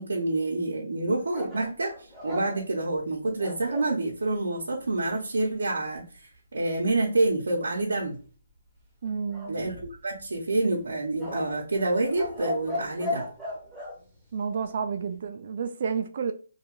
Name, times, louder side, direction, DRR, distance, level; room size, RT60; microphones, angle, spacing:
voice 1, 0.0-1.9 2.2-8.2 9.5-13.2, right 2 dB, 90° right, 0.6 m, -27 dB
sound 1, 1.3-3.9 9.3-10.2 11.2-14.0, left 2 dB, 5° right, 0.7 m, -36 dB
voice 2, 9.0-9.6 14.3-16.3, right 6 dB, 40° right, 0.3 m, -30 dB
2.6 x 2.3 x 2.9 m
hypercardioid pair, 170°, 0 cm